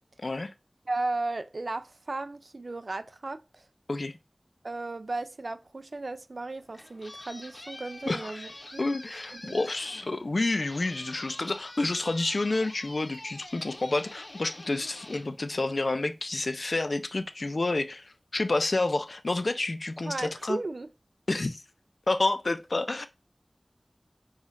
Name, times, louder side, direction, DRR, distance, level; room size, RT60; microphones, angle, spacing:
voice 1, 0.2-0.5 3.9-4.2 8.1-8.5 8.8-20.6 21.3-21.6 22.1-23.1, left 2 dB, 80° left, 0.4 m, -29 dB
voice 2, 0.9-3.7 4.6-8.8 9.3-9.6 20.1-20.9, right 2 dB, 85° right, 0.3 m, -35 dB
sound 1, 6.5-16.2, left 1 dB, 55° left, 0.7 m, -46 dB
5.5 x 2.4 x 3.0 m
wide cardioid pair, 45°, 0 cm